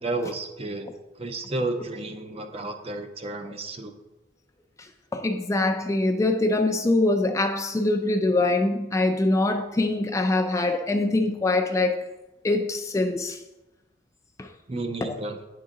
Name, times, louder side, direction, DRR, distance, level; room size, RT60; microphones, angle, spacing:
voice 1, 0.0-0.9 1.2-3.9 14.7-15.4, right 2 dB, 30° right, 0.6 m, -31 dB
voice 2, 5.1-12.0 12.4-13.4 14.4-14.5 15.0-15.1, left 2 dB, 15° left, 0.3 m, -23 dB
9.2 x 3.9 x 3.7 m
head